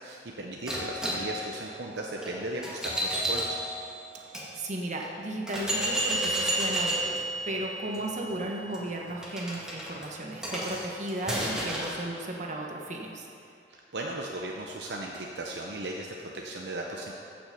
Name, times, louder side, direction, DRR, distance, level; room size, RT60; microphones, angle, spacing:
voice 1, 0.0-3.6 13.7-17.1, right 2 dB, 70° right, -1 dB, 0.8 m, -37 dB
sound 1, 0.7-4.5 5.0-5.1 5.5-12.0, right 1 dB, 5° right, 1.9 m, -32 dB
voice 2, 4.5-7.2 7.4-13.3, right 1 dB, 45° right, 0 dB, 1.3 m, -35 dB
14.5 x 6.0 x 5.3 m, 2.6 s
head